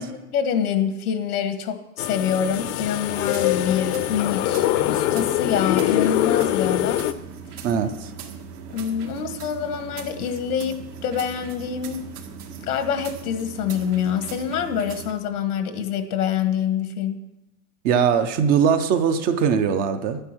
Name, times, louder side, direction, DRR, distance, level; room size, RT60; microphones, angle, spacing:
voice 1, 0.0-7.0 8.7-10.8 11.0-12.0 12.7-17.2, left 8 dB, 85° left, 9 dB, 1.6 m, -26 dB
sound 1, 2.0-7.1, left 13 dB, 50° left, 0.7 m, -23 dB
sound 2, 3.1-15.1, right 6 dB, 85° right, 1.9 m, -39 dB
voice 2, 7.6-8.1 17.8-20.2, right 7 dB, 20° right, 9 dB, 0.4 m, -21 dB
11.0 x 9.8 x 6.0 m, 0.94 s
supercardioid pair, 145°, 44 cm